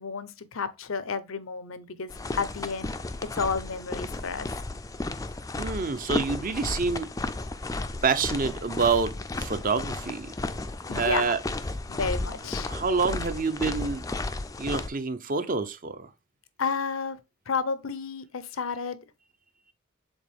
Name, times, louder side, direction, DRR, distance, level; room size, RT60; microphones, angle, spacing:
voice 1, 0.0-2.9 3.2-4.6 10.9-11.3 11.9-12.7 16.6-17.2 17.5-19.0, left 5 dB, 80° left, 0.7 m, -31 dB
sound 1, 2.1-14.9, left 2 dB, 15° left, 0.4 m, -33 dB
voice 2, 5.6-7.1 8.0-10.3 10.9-11.4 12.7-14.0 14.6-16.1, right 4 dB, 40° right, 0.7 m, -27 dB
7.2 x 4.0 x 3.5 m
head